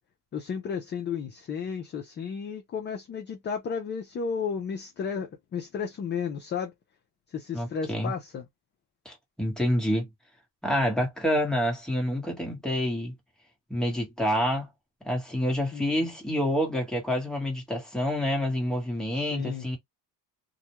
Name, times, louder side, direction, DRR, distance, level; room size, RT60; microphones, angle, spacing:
voice 1, 0.3-6.7 7.3-8.4 15.7-16.1 19.1-19.7, left 6 dB, 30° left, 0.4 m, -33 dB
voice 2, 7.5-8.1 9.0-10.1 10.6-13.1 13.7-14.7 15.0-19.8, equal, ahead, 1.0 m, -28 dB
2.4 x 2.1 x 2.8 m
cardioid pair, 140°, 41 cm